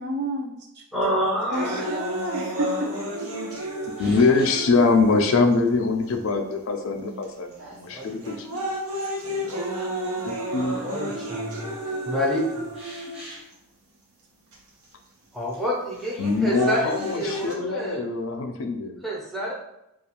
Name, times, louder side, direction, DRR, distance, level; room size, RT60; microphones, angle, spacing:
voice 1, 0.0-0.8 1.5-2.9, right 1 dB, 50° right, 0 dB, 0.4 m, -30 dB
voice 2, 0.9-1.8 7.9-8.3 10.8-11.8 12.1-12.7 15.3-18.0 19.0-19.5, equal, ahead, -5 dB, 0.5 m, -28 dB
sound 1, 1.5-5.5 6.3-6.4 7.2-7.5 8.0-13.5 14.5-14.6 16.0-17.5, right 1 dB, 90° right, 0.7 m, -32 dB
voice 3, 4.0-8.7 10.3-10.8 16.2-19.0, left 3 dB, 65° left, 3 dB, 0.4 m, -23 dB
sound 2, 4.0-4.8 6.3-6.4 7.3-8.1 8.5-8.6 10.5-10.6 12.7-13.5, right 1 dB, 30° right, 0.8 m, -43 dB
voice 4, 7.6-9.0 9.3-10.1 11.8-12.2, right 2 dB, 70° right, -7 dB, 1.1 m, -50 dB
2.4 x 2.3 x 2.8 m, 0.84 s
head